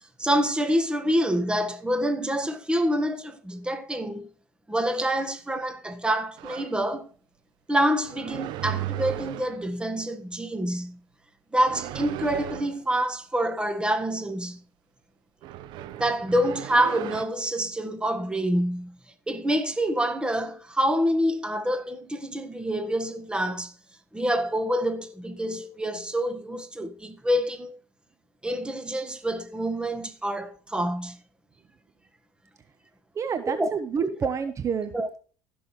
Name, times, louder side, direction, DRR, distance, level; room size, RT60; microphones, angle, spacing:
voice 1, 0.2-4.3 4.7-7.1 7.7-11.0 11.5-14.6 16.0-18.9 19.3-23.7 24.1-27.8 28.4-31.2 33.4-33.7 34.0-34.3 34.9-35.2, equal, 10° right, 1.5 m, -27 dB
sound 1, 6.4-6.7 8.0-9.7 11.5-12.8 15.4-17.2, right 12 dB, 65° right, 0.7 m, -35 dB
voice 2, 33.2-34.9, right 6 dB, 40° right, 0.9 m, -28 dB
15.5 x 6.1 x 3.2 m
hypercardioid pair, 75°, 8 cm